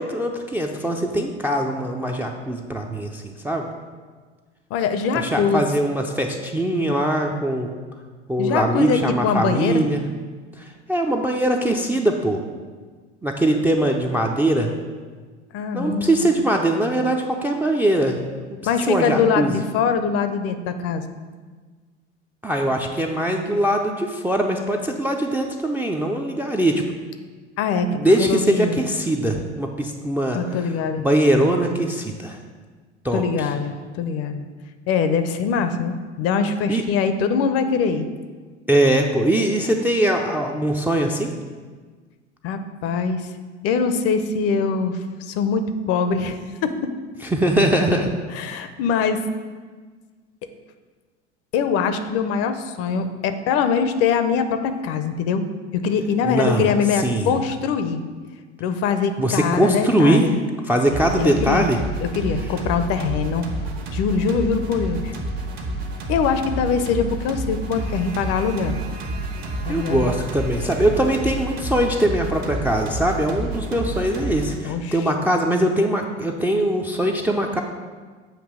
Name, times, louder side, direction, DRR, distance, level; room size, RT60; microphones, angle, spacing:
voice 1, 0.0-3.7 5.1-7.7 8.3-10.0 10.6-12.4 13.2-14.7 15.7-18.5 18.9-19.5 22.4-26.8 27.9-30.4 31.0-32.4 33.0-33.2 36.7-36.8 38.7-41.3 47.3-48.1 56.2-56.7 57.0-57.3 59.2-60.3 60.6-61.8 69.7-77.6, right 1 dB, 5° right, 1 dB, 0.4 m, -21 dB
voice 2, 4.7-5.7 8.4-9.8 15.5-16.3 18.6-21.0 27.6-27.9 28.2-28.9 30.3-31.0 33.1-34.4 34.9-38.1 42.4-43.2 43.6-46.7 48.3-49.2 51.5-55.4 55.7-58.0 58.6-60.4 61.2-61.7 62.0-63.5 63.9-65.1 66.1-68.8 69.6-70.1 74.6-75.1, left 6 dB, 45° left, 9 dB, 0.6 m, -23 dB
sound 1, 60.9-74.6, right 1 dB, 60° right, 1.3 m, -29 dB
7.4 x 2.8 x 6.0 m, 1.5 s
hypercardioid pair, 80°, 35 cm